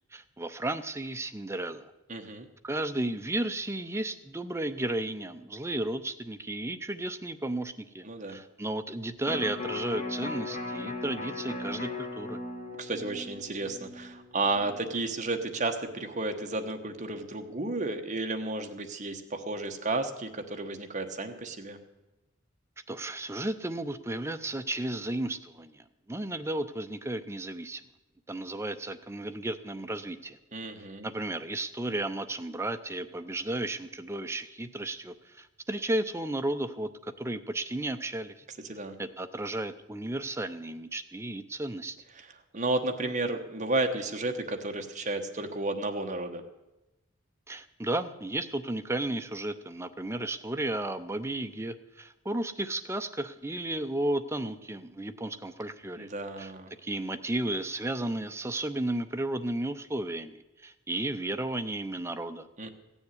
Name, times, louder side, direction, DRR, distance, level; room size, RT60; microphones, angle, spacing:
voice 1, 0.1-1.9 2.6-12.4 22.9-27.8 28.3-30.4 31.0-38.3 39.0-42.0 47.5-56.1 56.4-56.5 56.8-62.5, right 1 dB, 15° right, 9 dB, 0.6 m, -33 dB
voice 2, 2.1-2.5 8.0-8.4 12.8-21.8 30.5-31.1 38.7-39.0 42.2-42.3 42.5-46.4 56.0-56.7 62.6-62.7, right 2 dB, 35° right, 6 dB, 1.2 m, -32 dB
Electric guitar, 9.2-15.5 15.9-16.0, left 3 dB, 35° left, 1.8 m, -38 dB
16.0 x 7.1 x 9.7 m, 1.0 s
head